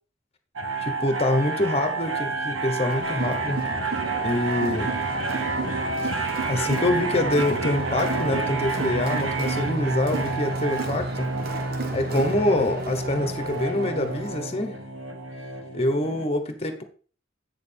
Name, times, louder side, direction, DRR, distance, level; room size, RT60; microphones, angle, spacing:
sound 1, 0.6-16.3, right 3 dB, 90° right, 1.1 m, -29 dB
voice 1, 0.8-3.7 4.2-4.9 6.0-11.3 11.9-14.8 15.7-16.8, left 1 dB, 30° left, 1.1 m, -25 dB
Crowd, 2.9-14.4, right 3 dB, 50° right, 1.0 m, -34 dB
8.0 x 6.5 x 3.5 m
head